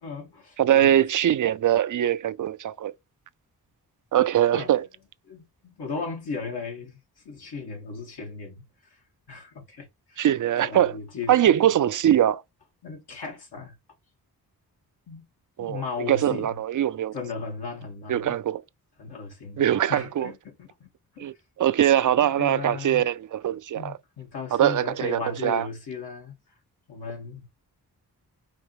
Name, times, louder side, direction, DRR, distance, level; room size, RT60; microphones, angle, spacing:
voice 1, 0.0-0.9 4.5-4.7 5.3-5.4 5.8-8.6 8.9-9.0 9.3-10.3 10.6-11.7 12.8-13.8 15.1-15.3 15.6-16.6 17.1-18.4 19.0-20.9 21.1-21.3 22.2-23.1 23.7-26.4 26.9-27.5, left 5 dB, 80° left, 2.2 m, -36 dB
voice 2, 0.6-2.9 4.1-4.8 10.2-10.9 11.3-12.4 15.6-15.8 16.1-17.1 18.1-18.6 19.6-20.3 21.2-21.3 21.6-23.9 24.5-25.7, right 11 dB, 55° right, 0.4 m, -22 dB
5.1 x 2.9 x 3.3 m
cardioid pair, 50°, 38 cm